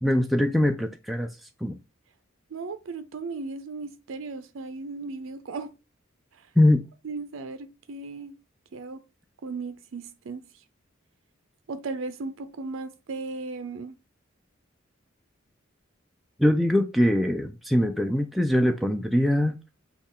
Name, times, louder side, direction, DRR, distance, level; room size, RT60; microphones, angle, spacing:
voice 1, 0.0-1.3 1.6-1.8 6.6-6.8 16.4-19.7, left 1 dB, ahead, 0.3 m, -22 dB
voice 2, 2.5-5.7 6.3-6.5 7.0-8.4 8.7-9.0 9.4-10.4 11.7-14.0, right 3 dB, 80° right, 0.5 m, -36 dB
6.3 x 2.4 x 3.6 m
head